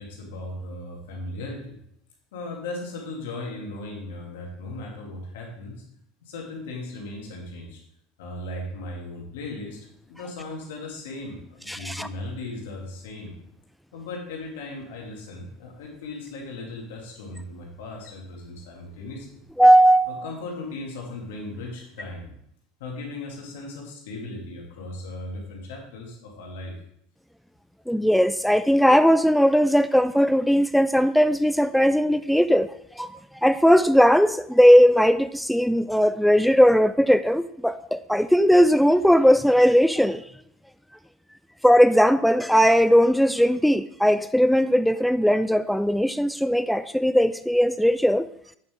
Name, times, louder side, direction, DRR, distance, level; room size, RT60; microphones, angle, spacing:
voice 1, 0.0-1.8 2.3-5.8 6.2-7.8 8.2-9.8 10.1-13.4 13.9-19.4 20.1-22.3 22.8-26.8, left 2 dB, 75° left, -1 dB, 2.5 m, -37 dB
voice 2, 11.7-12.1 19.6-20.2 27.9-33.1 33.4-40.2 41.6-48.3, equal, ahead, 12 dB, 0.3 m, -18 dB
8.4 x 7.3 x 3.7 m, 0.71 s
hypercardioid pair, 90°, 0 cm